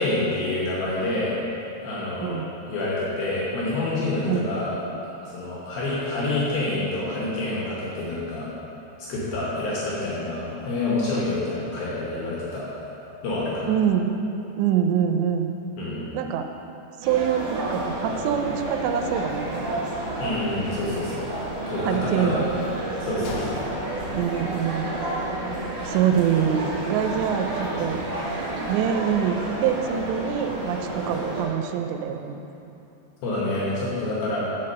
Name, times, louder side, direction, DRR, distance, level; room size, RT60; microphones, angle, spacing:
voice 1, 0.0-1.4 1.8-2.4 2.7-4.7 5.2-8.5 9.0-12.6 13.2-13.7 15.8-16.1 20.2-21.3 21.7-22.4 23.0-23.6 25.8-26.0 33.2-34.4, left 2 dB, 70° left, -6 dB, 2.5 m, -27 dB
voice 2, 13.7-14.1 14.6-15.5 16.1-16.5 17.0-19.6 21.8-22.7 24.1-25.0 25.9-28.0 28.7-32.4, right 8 dB, 85° right, 6 dB, 2.7 m, -25 dB
sound 1, 17.0-31.4, right 1 dB, 55° right, 2.1 m, -30 dB
Gunshot gunfire, 23.2-25.3 25.6-25.7 26.3-26.5, left 4 dB, 90° left, 3.0 m, -38 dB
5.9 x 5.8 x 6.4 m, 2.9 s
omnidirectional pair, 5.1 m